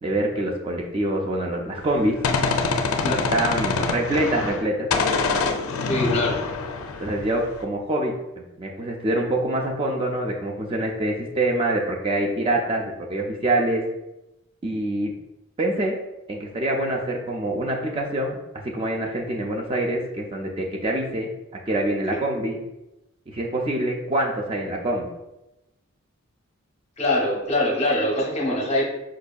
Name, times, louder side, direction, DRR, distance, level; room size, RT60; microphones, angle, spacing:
voice 1, 0.0-2.2 3.3-4.9 7.0-13.8 14.6-15.1 15.6-16.0 16.3-18.4 18.6-21.3 21.7-22.6 23.3-25.1, right 1 dB, 25° right, 0 dB, 0.3 m, -25 dB
Gunshot gunfire, 1.8-4.7 4.9-7.6, left 4 dB, 80° left, 0.4 m, -25 dB
voice 2, 5.9-6.5 22.1-22.2 27.0-28.8, left 1 dB, 30° left, -1 dB, 0.6 m, -23 dB
4.8 x 2.6 x 2.2 m, 0.94 s
head